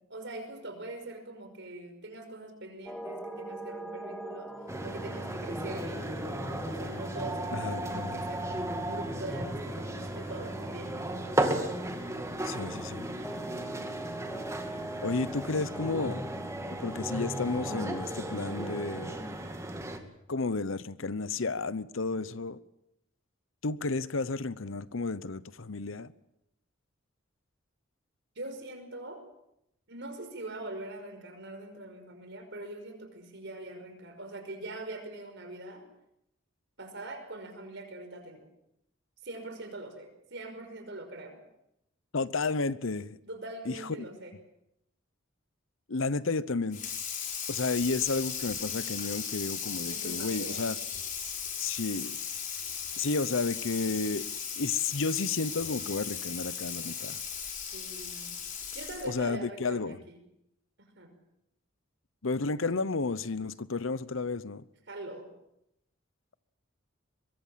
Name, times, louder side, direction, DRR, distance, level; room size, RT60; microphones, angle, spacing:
voice 1, 0.1-4.5 4.8-11.7 28.4-29.3 29.9-35.8 36.8-38.5 39.2-41.4 43.2-44.3 49.9-50.6 57.7-58.3 58.7-60.2 61.0-61.1 64.9-65.3, right 2 dB, 60° right, 5.6 m, -43 dB
sound 1, 2.9-19.5, right 2 dB, ahead, 2.7 m, -43 dB
sound 2, 4.7-20.0, right 1 dB, 15° right, 2.2 m, -35 dB
voice 2, 7.5-8.2 12.4-13.1 15.0-16.3 16.8-19.2 20.3-22.6 23.6-26.1 42.1-43.2 43.7-43.8 45.9-46.8 47.5-50.8 51.6-52.2 53.0-54.2 54.6-57.2 59.0-60.0 62.2-64.6, left 3 dB, 70° left, 0.9 m, -32 dB
Water tap faucet / Sink (filling or washing), 46.7-59.2, left 7 dB, 40° left, 4.7 m, -37 dB
23.5 x 22.0 x 7.5 m
head